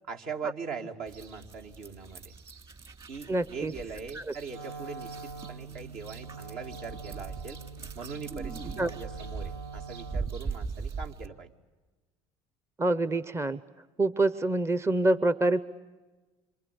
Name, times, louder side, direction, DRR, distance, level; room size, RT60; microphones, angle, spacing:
voice 1, 0.1-2.3 3.1-7.6 7.9-11.5, right 5 dB, 65° right, 2 dB, 2.6 m, -41 dB
sound 1, 1.1-11.3, right 5 dB, 35° right, 2.7 m, -41 dB
voice 2, 3.3-3.7 8.8-8.9 12.8-13.6 14.0-15.6, right 2 dB, 15° right, 15 dB, 0.8 m, -26 dB
Wind instrument woodwind instrument, 4.4-10.5, right 4 dB, 80° right, 2.8 m, -44 dB
27.0 x 26.0 x 8.4 m, 1.2 s
hypercardioid pair, 70°, 16 cm